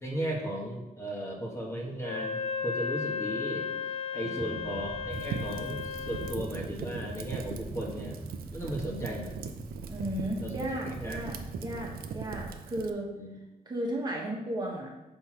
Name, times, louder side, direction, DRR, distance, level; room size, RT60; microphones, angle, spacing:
voice 1, 0.0-3.7 4.1-8.2 8.5-9.4 10.4-10.5 11.0-11.2 13.1-13.3, right 1 dB, 20° left, -1 dB, 1.4 m, -36 dB
Wind instrument woodwind instrument, 2.0-6.5, left 6 dB, 45° left, 0.7 m, -35 dB
voice 2, 4.2-4.7 9.9-13.1 13.6-14.9, right 1 dB, 25° right, -2 dB, 1.4 m, -35 dB
sound 1, 4.4-12.5, right 1 dB, 5° right, 0.7 m, -43 dB
Fire, 5.1-12.9, right 7 dB, 90° right, 0.6 m, -40 dB
5.4 x 4.5 x 6.0 m, 0.99 s
cardioid pair, 115°, 15 cm